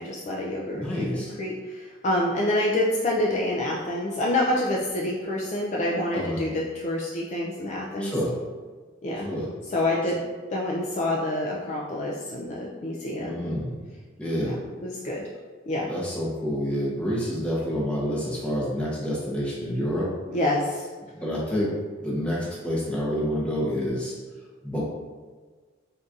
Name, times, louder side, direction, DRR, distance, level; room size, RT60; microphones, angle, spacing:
voice 1, 0.0-8.1 9.0-9.3 9.7-10.2 10.5-13.6 14.4-14.5 14.8-15.2 15.7-15.9 20.3-20.9, left 1 dB, 35° left, -3 dB, 0.3 m, -27 dB
voice 2, 0.7-1.3 6.1-6.4 8.0-8.3 9.2-9.5 13.2-13.8 14.2-14.6 15.9-20.1 21.2-21.7 22.0-24.2 24.6-24.8, equal, 5° left, -6 dB, 0.7 m, -28 dB
3.7 x 2.6 x 2.4 m, 1.4 s
head